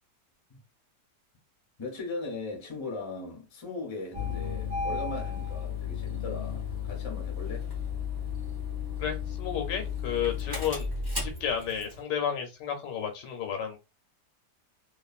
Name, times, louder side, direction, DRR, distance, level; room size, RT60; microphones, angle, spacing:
voice 1, 1.8-7.7, left 3 dB, 25° left, 0.6 m, -38 dB
Engine starting, 4.1-12.0, left 6 dB, 20° right, 0.9 m, -34 dB
voice 2, 9.0-10.9 11.2-13.8, left 8 dB, 90° left, 1.4 m, -32 dB
2.9 x 2.4 x 2.4 m
omnidirectional pair, 1.8 m